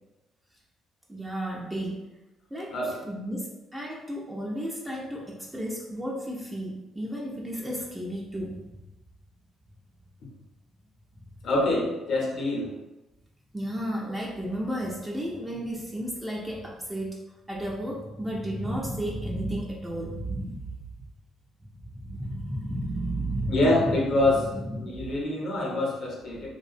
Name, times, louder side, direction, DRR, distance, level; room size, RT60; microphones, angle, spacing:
voice 1, 1.1-2.0 2.5-8.6 13.5-17.2 17.5-20.7 21.9-23.9 24.4-24.9 26.3-26.5, right 1 dB, 15° right, -3 dB, 0.4 m, -33 dB
voice 2, 2.7-3.0 11.4-12.7 23.5-24.5 24.8-26.5, left 2 dB, 65° left, -2 dB, 0.7 m, -25 dB
2.3 x 2.1 x 2.5 m, 1.0 s
supercardioid pair, 70°, 0 cm